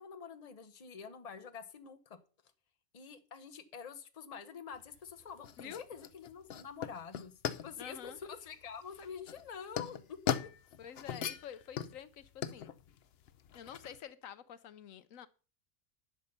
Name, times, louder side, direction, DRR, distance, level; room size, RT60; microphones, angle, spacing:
voice 1, 0.0-2.2 2.9-7.3 7.6-10.3, left 6 dB, 30° left, 0.9 m, -47 dB
sound 1, 4.7-14.0, left 8 dB, 60° left, 0.8 m, -40 dB
voice 2, 7.8-8.2 10.8-12.7 13.5-15.3, left 9 dB, 80° left, 1.1 m, -48 dB
11.5 x 5.5 x 6.6 m
omnidirectional pair, 1.4 m